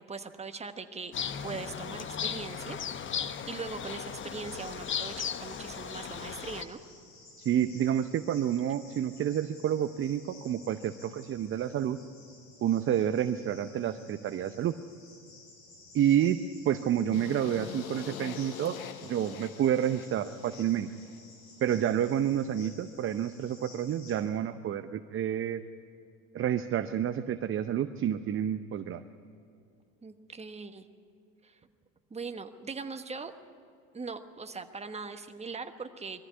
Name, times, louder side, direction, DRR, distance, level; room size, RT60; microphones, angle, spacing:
voice 1, 0.1-1.1 1.4-2.8 3.5-6.8 30.0-30.9 31.4-31.6 32.1-33.3 33.9-36.2, right 4 dB, 15° right, 7 dB, 1.3 m, -40 dB
sound 1, 1.1-6.6, left 7 dB, 30° left, 1.0 m, -36 dB
Cricket, 4.1-24.1, left 3 dB, 55° left, 7.8 m, -54 dB
voice 2, 7.4-12.0 12.6-14.8 15.9-20.9 21.6-25.6 26.3-29.0, right 10 dB, 30° right, 10 dB, 0.7 m, -29 dB
sound 2, 17.1-21.2, left 9 dB, 90° left, 1.2 m, -44 dB
21.5 x 14.5 x 9.5 m, 2.5 s
hypercardioid pair, 85°, 41 cm